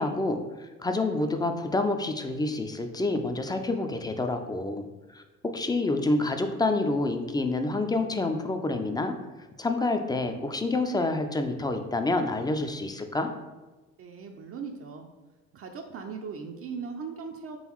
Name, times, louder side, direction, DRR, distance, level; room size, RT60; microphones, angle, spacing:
voice 1, 0.0-4.9 5.1-9.1 9.6-13.3, left 2 dB, 10° left, 6 dB, 0.4 m, -28 dB
voice 2, 14.0-15.1 15.5-17.6, right 5 dB, 45° right, 3 dB, 0.5 m, -38 dB
3.8 x 3.4 x 3.0 m, 1.1 s
supercardioid pair, 75°, 33 cm